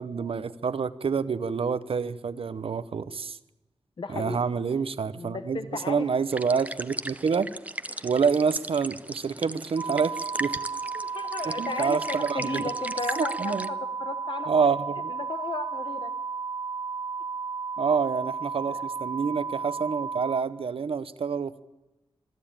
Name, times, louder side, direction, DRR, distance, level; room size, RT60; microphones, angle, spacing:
voice 1, 0.0-3.4 4.1-7.5 8.0-10.5 11.4-12.7 13.2-13.7 14.5-15.1 17.8-21.6, right 5 dB, 70° right, 15 dB, 0.8 m, -27 dB
voice 2, 4.0-4.4 5.2-6.1 7.9-8.0 10.9-14.8 15.1-16.1 18.7-18.8, left 4 dB, 55° left, 9 dB, 1.0 m, -35 dB
sound 1, 6.3-13.7, right 1 dB, 15° right, 0.7 m, -37 dB
sound 2, 9.8-20.4, right 5 dB, 45° right, 1.1 m, -33 dB
23.0 x 12.5 x 8.9 m, 1.0 s
wide cardioid pair, 95°, 10 cm